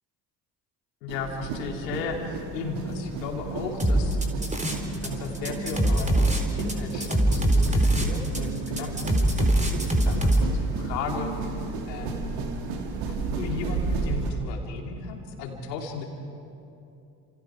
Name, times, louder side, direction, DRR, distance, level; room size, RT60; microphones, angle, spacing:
voice 1, 1.0-4.2 5.0-9.2 10.0-11.3 11.9-12.2 13.1-16.1, left 5 dB, 80° left, 2 dB, 3.0 m, -35 dB
sound 1, 1.1-14.3, right 3 dB, 70° right, 2.9 m, -33 dB
sound 2, 3.8-5.1 5.3-10.4, right 1 dB, 15° right, 4.1 m, -22 dB
29.5 x 27.5 x 5.0 m, 2.6 s
hypercardioid pair, 50°, 49 cm